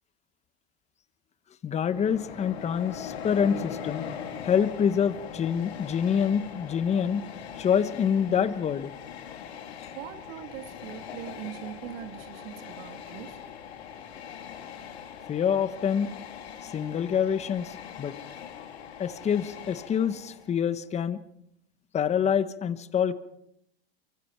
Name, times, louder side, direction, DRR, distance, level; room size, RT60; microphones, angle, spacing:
voice 1, 1.6-4.1 4.4-7.2 7.6-8.9 9.8-9.9 15.3-16.1 16.6-18.1 19.0-21.2 21.9-23.1, left 8 dB, 20° left, 13 dB, 1.2 m, -26 dB
Train, 1.7-20.6, left 8 dB, 80° left, 3.7 m, -41 dB
voice 2, 9.9-13.4, right 12 dB, 65° right, 7 dB, 2.4 m, -41 dB
26.0 x 24.0 x 4.6 m, 0.76 s
supercardioid pair, 130°, 32 cm